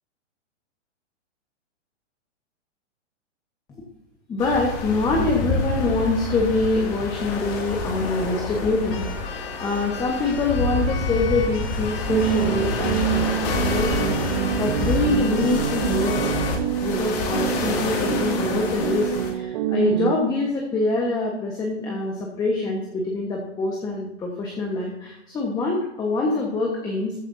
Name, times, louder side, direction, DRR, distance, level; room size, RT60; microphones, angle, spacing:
voice 1, 4.3-16.3 16.8-27.1, left 3 dB, 10° left, -1 dB, 1.4 m, -25 dB
sound 1, 4.4-19.3, left 3 dB, 30° left, 2.4 m, -28 dB
Keyboard (musical), 8.9-16.6, left 7 dB, 50° left, 1.7 m, -38 dB
sound 2, 12.1-20.1, right 11 dB, 35° right, 0.8 m, -26 dB
14.5 x 9.9 x 2.7 m, 0.86 s
hypercardioid pair, 155°, 36 cm